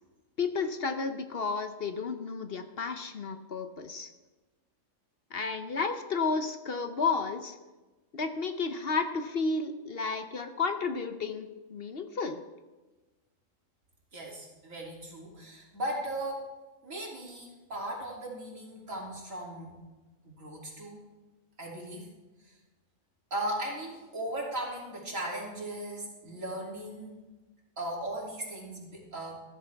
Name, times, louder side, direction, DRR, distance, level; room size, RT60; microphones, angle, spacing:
voice 1, 0.4-4.1 5.3-7.5 8.1-12.4, left 4 dB, 55° left, 7 dB, 1.0 m, -32 dB
voice 2, 14.1-16.5 16.8-19.8 20.2-21.0 21.6-22.1 22.4-22.5 23.3-27.2 27.8-29.4, right 1 dB, 85° right, -3 dB, 3.4 m, -37 dB
14.0 x 14.0 x 3.5 m, 1.2 s
omnidirectional pair, 1.3 m